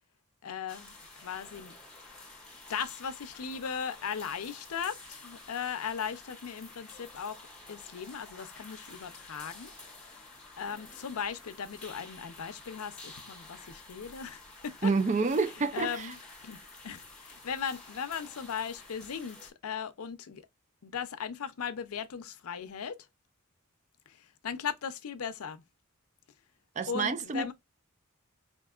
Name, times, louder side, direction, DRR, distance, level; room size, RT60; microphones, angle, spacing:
voice 1, 0.4-0.9 1.2-1.7 2.7-7.4 7.7-9.7 10.6-14.9 15.7-16.2 16.4-20.4 20.8-23.1 24.1-25.6 26.9-27.5, left 7 dB, 90° left, 0.5 m, -37 dB
sound 1, 0.7-19.5, left 2 dB, 5° left, 1.0 m, -50 dB
voice 2, 14.8-16.1 26.8-27.5, right 4 dB, 35° right, 0.4 m, -28 dB
4.5 x 2.5 x 2.3 m
head